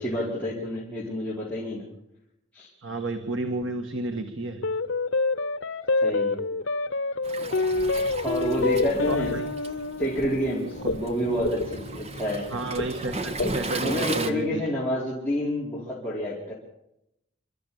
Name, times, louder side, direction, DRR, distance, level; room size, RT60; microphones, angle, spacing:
voice 1, 0.0-1.9 2.5-2.7 6.0-6.5 8.2-9.3 10.0-12.5 13.8-16.5, equal, 10° left, -7 dB, 4.8 m, -29 dB
voice 2, 2.8-4.7 7.6-7.8 9.1-9.5 12.5-14.6, right 2 dB, 85° right, 6 dB, 1.9 m, -32 dB
sound 1, 4.6-13.2, left 3 dB, 85° left, 0.9 m, -28 dB
Waves surf, 7.2-14.3, right 2 dB, 35° right, 1.7 m, -36 dB
sound 2, 7.8-14.0, left 1 dB, 60° left, 2.2 m, -35 dB
27.5 x 13.5 x 8.7 m, 0.83 s
head